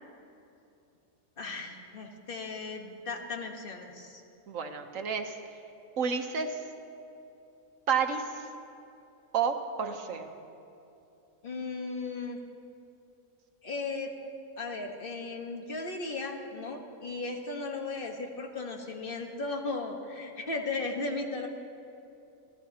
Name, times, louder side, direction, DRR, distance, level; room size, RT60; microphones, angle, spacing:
voice 1, 1.4-4.2 11.4-12.4 13.6-14.1 14.6-21.5, left 3 dB, 40° left, 2 dB, 1.4 m, -36 dB
voice 2, 4.5-5.4 6.0-6.6 7.9-8.5 9.3-10.3, right 6 dB, 65° right, 5 dB, 1.3 m, -30 dB
28.0 x 13.5 x 2.9 m, 2.8 s
omnidirectional pair, 1.5 m